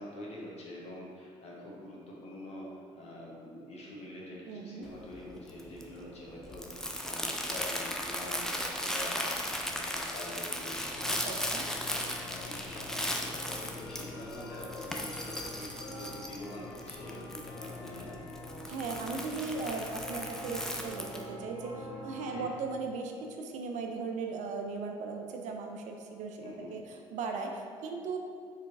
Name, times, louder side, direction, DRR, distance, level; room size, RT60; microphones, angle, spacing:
voice 1, 0.0-11.9 12.2-18.2 22.2-22.4 26.4-26.7, left 1 dB, 45° left, -4 dB, 1.0 m, -45 dB
voice 2, 4.4-4.9 11.3-11.7 16.4-16.7 18.7-28.2, right 4 dB, 55° right, 3 dB, 0.4 m, -38 dB
Crumpling crinkling, 4.8-21.3, left 1 dB, 5° left, 0.4 m, -37 dB
sound 1, 10.9-22.7, left 2 dB, 75° left, 0.6 m, -46 dB
4.4 x 3.2 x 2.6 m, 2.2 s
figure-of-eight pair, 45°, 15 cm